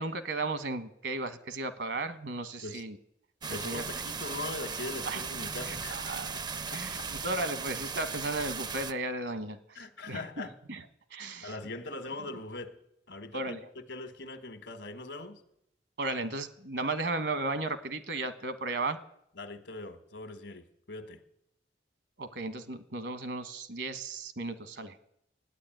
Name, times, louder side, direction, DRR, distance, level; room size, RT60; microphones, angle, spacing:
voice 1, 0.0-3.0 3.5-3.8 5.1-5.2 5.6-6.4 6.7-10.8 11.1-11.5 13.3-13.7 16.0-19.0 22.2-25.0, right 2 dB, 70° right, 11 dB, 1.2 m, -35 dB
sound 1, 3.4-8.9, right 5 dB, 25° right, 0.4 m, -37 dB
voice 2, 3.5-6.1 6.7-7.1 9.7-10.5 11.2-12.8 13.1-15.4 19.4-21.2, left 2 dB, 80° left, 10 dB, 1.5 m, -41 dB
13.0 x 9.6 x 9.1 m, 0.77 s
head